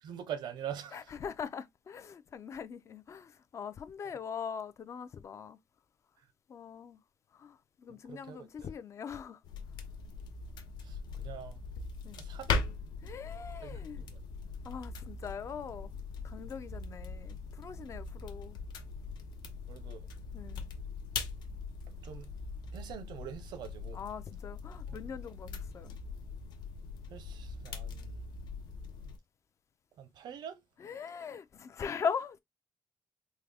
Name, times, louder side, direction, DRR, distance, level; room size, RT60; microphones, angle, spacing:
voice 1, 0.0-1.1 8.1-8.7 10.8-11.6 12.2-12.6 13.6-14.2 19.7-20.1 22.0-22.3 22.7-24.0 24.9-25.0 27.1-28.2 30.0-30.6, right 9 dB, 80° right, 0.7 m, -44 dB
voice 2, 0.9-5.6 6.5-7.0 7.3-9.4 12.0-12.2 13.0-14.0 14.6-16.0 16.2-18.6 20.3-20.7 23.9-25.9 30.8-32.4, left 6 dB, 40° left, 0.4 m, -41 dB
sound 1, 9.4-29.2, left 4 dB, 80° left, 0.6 m, -41 dB
3.6 x 2.0 x 3.4 m
cardioid pair, 135°, 7 cm